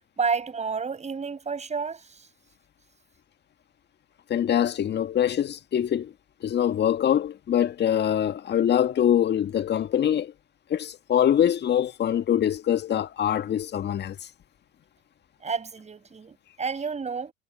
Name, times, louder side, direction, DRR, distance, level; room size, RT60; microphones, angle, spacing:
voice 1, 0.2-2.1 15.4-17.3, right 5 dB, 20° right, 7.5 m, -30 dB
voice 2, 4.3-6.1 6.4-10.3 10.7-14.2, left 10 dB, 30° left, 1.8 m, -24 dB
hypercardioid pair, 80°, 32 cm